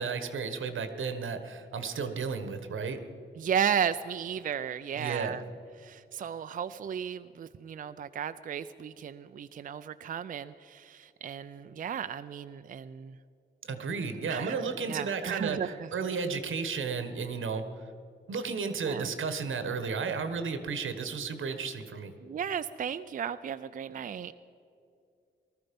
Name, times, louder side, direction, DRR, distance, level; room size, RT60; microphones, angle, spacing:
voice 1, 0.0-3.0 5.0-5.4 13.6-17.7 18.3-22.1, right 5 dB, 85° right, 9 dB, 1.3 m, -33 dB
voice 2, 3.4-5.4 5.8-13.2 14.3-15.9 18.9-19.1 22.2-24.3, right 8 dB, 45° right, 11 dB, 0.4 m, -34 dB
19.0 x 13.5 x 5.3 m, 2.5 s
wide cardioid pair, 175°, 20 cm